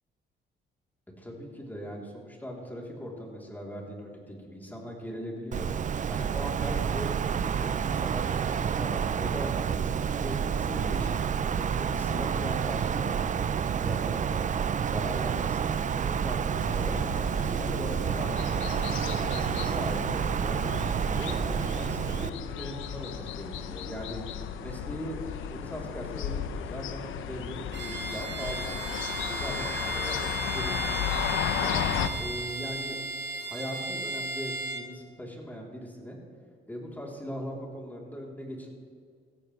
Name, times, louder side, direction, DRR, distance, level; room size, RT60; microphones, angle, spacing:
voice 1, 1.2-5.7 6.1-11.1 11.5-13.3 13.6-14.4 14.8-15.7 16.0-17.0 17.4-20.7 21.2-24.2 24.6-25.2 25.5-28.8 29.2-31.2 31.6-31.9 32.2-33.0 33.4-36.2 36.7-38.7, equal, 10° left, -2 dB, 3.6 m, -39 dB
Wind, 5.5-22.3, right 7 dB, 40° right, 0.5 m, -29 dB
sound 1, 16.6-32.1, left 9 dB, 80° left, 0.9 m, -34 dB
Bowed string instrument, 27.7-34.9, right 3 dB, 60° right, 1.4 m, -35 dB
17.0 x 14.0 x 3.4 m, 2.1 s
cardioid pair, 90°, 20 cm